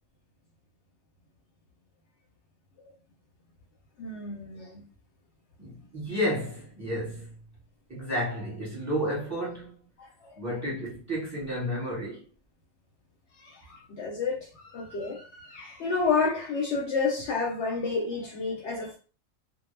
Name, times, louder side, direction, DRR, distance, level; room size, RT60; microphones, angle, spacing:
voice 1, 4.0-4.8 6.1-6.2 10.0-10.3 13.4-19.0, left 4 dB, 65° left, 0.8 m, -30 dB
voice 2, 5.6-7.3 7.9-9.7 10.4-12.2, equal, 15° right, 0.9 m, -31 dB
2.2 x 2.0 x 3.1 m
omnidirectional pair, 1.4 m